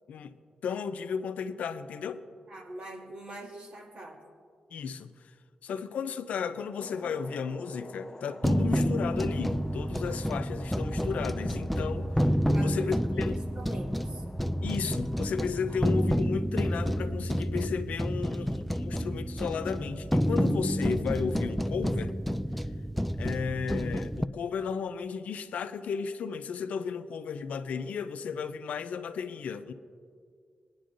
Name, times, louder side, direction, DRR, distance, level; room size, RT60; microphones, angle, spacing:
voice 1, 0.6-2.2 4.7-5.1 5.6-12.3 12.6-13.4 14.6-22.1 23.2-29.7, left 6 dB, 85° left, 0.5 m, -34 dB
voice 2, 2.5-4.2 12.5-14.2 15.7-15.8, right 2 dB, 70° right, 2.2 m, -44 dB
sound 1, 6.8-16.2, left 2 dB, 20° left, 0.7 m, -49 dB
sound 2, 8.4-24.3, equal, ahead, 0.3 m, -29 dB
19.0 x 10.0 x 2.6 m
cardioid pair, 70°, 2 cm